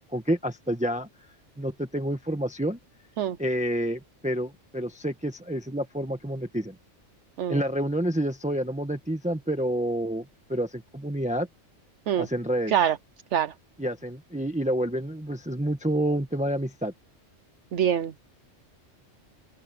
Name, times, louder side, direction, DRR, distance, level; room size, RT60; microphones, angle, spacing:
voice 1, 0.1-1.1 1.6-2.8 3.4-6.7 7.5-11.5 12.2-12.7 13.8-16.9, right 1 dB, 5° right, 1.4 m, -28 dB
voice 2, 17.7-18.2, right 9 dB, 70° right, 1.0 m, -24 dB
open air
omnidirectional pair, 1.3 m